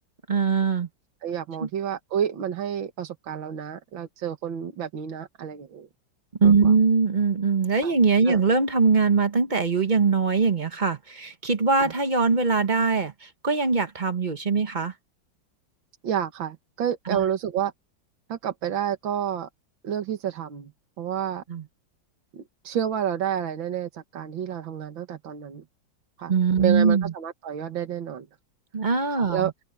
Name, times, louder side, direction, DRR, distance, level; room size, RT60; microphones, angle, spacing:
voice 1, 0.3-0.9 1.6-1.7 6.4-14.9 17.1-17.2 21.5-21.6 26.3-27.1 28.7-29.5, right 4 dB, 30° right, 0.9 m, -22 dB
voice 2, 1.2-5.9 6.4-6.7 7.8-7.9 8.3-8.4 11.8-11.9 16.0-17.7 18.3-19.5 19.8-20.7 21.0-21.4 22.3-25.6 26.2-26.3 26.6-28.3 29.2-29.5, right 9 dB, 80° right, 2.3 m, -30 dB
omnidirectional pair, 2.1 m